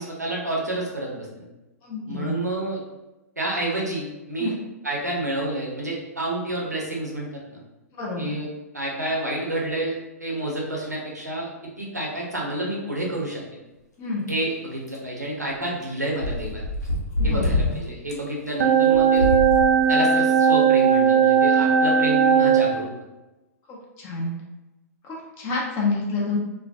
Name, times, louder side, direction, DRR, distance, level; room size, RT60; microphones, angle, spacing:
voice 1, 0.0-1.5 2.1-2.8 3.4-4.5 4.8-7.6 8.2-8.5 8.7-9.9 10.2-11.5 11.8-13.4 14.3-16.7 17.2-19.3 19.9-22.9, right 1 dB, 85° right, -3 dB, 0.7 m, -29 dB
voice 2, 1.8-2.4 4.4-4.6 8.0-8.3 14.0-14.2 17.2-17.8 23.7-24.3 25.0-26.4, left 3 dB, 25° left, -2 dB, 0.6 m, -28 dB
sound 1, 14.3-14.4 14.9-15.0 15.8-15.9 16.2-17.7 18.1-18.2 18.9-19.7 20.3-20.4 20.9-21.0, left 2 dB, 85° left, 0.7 m, -25 dB
sound 2, 18.6-22.7, right 7 dB, 60° right, 0.4 m, -18 dB
2.3 x 2.1 x 2.6 m, 1.0 s
figure-of-eight pair, 110°, 9 cm